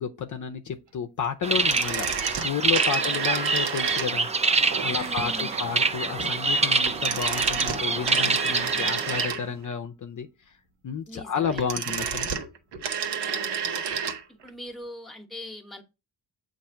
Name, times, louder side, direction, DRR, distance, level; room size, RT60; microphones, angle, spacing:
voice 1, 0.0-4.3 4.8-10.5 10.8-12.3, left 7 dB, 45° left, 0.6 m, -31 dB
sound 1, 1.4-9.3, right 3 dB, 15° right, 0.4 m, -26 dB
sound 2, 1.5-4.4 6.8-9.7 11.4-14.2 14.5-14.6, right 7 dB, 70° right, 1.1 m, -30 dB
sound 3, 4.5-9.7, right 7 dB, 40° right, 0.8 m, -42 dB
voice 2, 4.9-5.6 11.1-12.0 13.2-13.8 14.3-15.8, left 1 dB, ahead, 1.1 m, -42 dB
7.6 x 2.6 x 5.6 m
cardioid pair, 110°, 43 cm